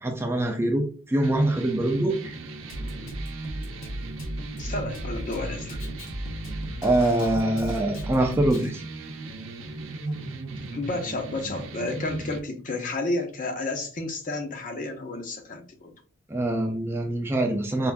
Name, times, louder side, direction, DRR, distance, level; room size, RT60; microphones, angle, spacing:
voice 1, 0.0-2.3 6.8-8.8 16.3-17.9, right 1 dB, 10° right, 0.3 m, -24 dB
sound 1, 1.2-12.4, right 2 dB, 75° right, 0.6 m, -37 dB
Drum kit, 2.7-8.7, equal, 80° left, 0.9 m, -35 dB
voice 2, 4.6-5.8 10.7-15.9, left 2 dB, 40° left, 0.6 m, -31 dB
4.5 x 2.4 x 2.2 m
head